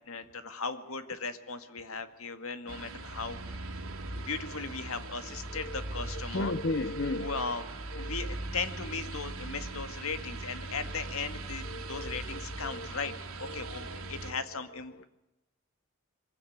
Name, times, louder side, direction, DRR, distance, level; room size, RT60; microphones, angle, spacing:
voice 1, 0.1-3.4 4.3-6.5 7.2-15.0, left 4 dB, 75° left, 9 dB, 2.0 m, -37 dB
sound 1, 2.7-14.3, right 2 dB, 70° right, 3.5 m, -40 dB
voice 2, 6.3-7.5 8.0-8.1 11.7-12.2 12.6-12.9 13.5-13.6, left 2 dB, 50° left, 12 dB, 0.7 m, -34 dB
23.5 x 16.0 x 9.4 m, 0.98 s
head